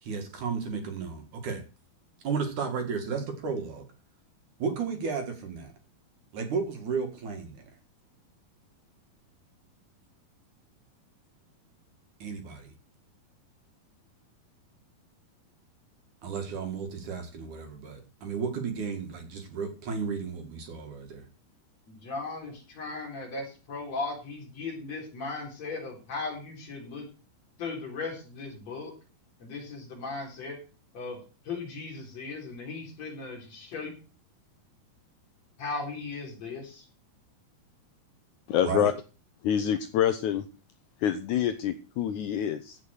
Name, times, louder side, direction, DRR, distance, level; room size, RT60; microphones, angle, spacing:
voice 1, 0.0-1.6 2.2-3.8 4.6-5.7 6.3-7.7 12.2-12.7 16.2-21.2 38.6-38.9, right 5 dB, 60° right, 5 dB, 3.1 m, -33 dB
voice 2, 21.9-27.1 27.6-28.9 29.4-30.6 30.9-31.2 31.4-33.9 35.6-36.9, left 3 dB, 45° left, 0 dB, 5.0 m, -37 dB
voice 3, 38.5-38.9 39.4-40.5 41.0-42.8, left 10 dB, 80° left, 9 dB, 1.7 m, -26 dB
15.5 x 5.6 x 6.5 m, 0.34 s
omnidirectional pair, 4.4 m